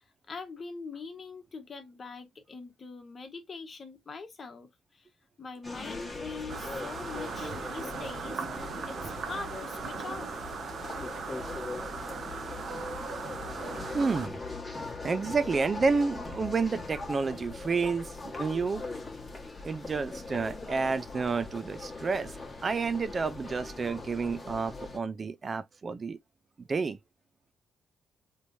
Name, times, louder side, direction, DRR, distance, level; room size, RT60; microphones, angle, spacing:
voice 1, 0.3-5.1 5.4-10.4, left 4 dB, 40° left, 1.2 m, -43 dB
sound 1, 5.6-25.0, left 3 dB, 20° left, 1.4 m, -41 dB
sound 2, 6.5-14.3, right 5 dB, 55° right, 0.9 m, -39 dB
sound 3, 7.1-14.2, right 5 dB, 70° right, 1.2 m, -46 dB
voice 2, 13.9-14.4 15.0-18.8 19.6-22.3 22.6-26.2 26.7-27.0, right 4 dB, 35° right, 0.4 m, -30 dB
3.3 x 3.1 x 2.6 m
cardioid pair, 90°, 0 cm